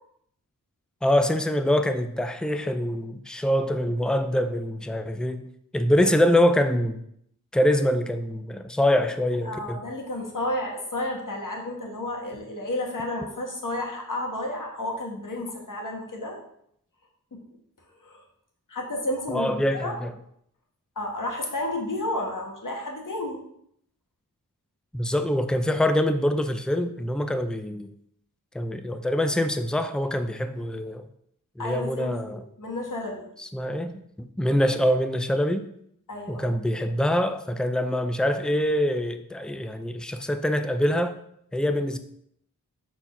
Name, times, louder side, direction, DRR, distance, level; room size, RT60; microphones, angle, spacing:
voice 1, 1.0-5.5 5.7-7.0 7.5-9.8 19.3-20.1 24.9-27.9 28.5-31.1 31.6-32.4 33.4-35.7 36.3-41.2 41.5-42.0, left 1 dB, ahead, 9 dB, 0.5 m, -24 dB
voice 2, 9.4-16.4 17.3-17.4 18.0-18.2 18.7-20.0 21.0-23.4 31.6-33.3 36.1-36.5, left 1 dB, 65° left, 0 dB, 1.9 m, -31 dB
6.8 x 4.4 x 5.9 m, 0.70 s
wide cardioid pair, 105°, 34 cm